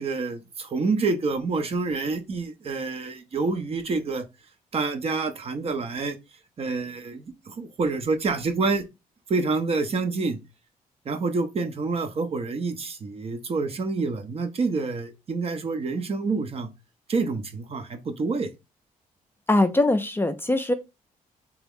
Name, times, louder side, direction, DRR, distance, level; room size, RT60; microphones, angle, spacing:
voice 1, 0.0-4.3 4.7-6.2 6.6-8.8 9.3-10.4 11.1-16.7 17.1-18.5, right 4 dB, 45° right, 0.7 m, -27 dB
voice 2, 19.5-20.7, left 2 dB, 15° left, 0.5 m, -21 dB
3.5 x 3.0 x 3.6 m
cardioid pair, 85°, 14 cm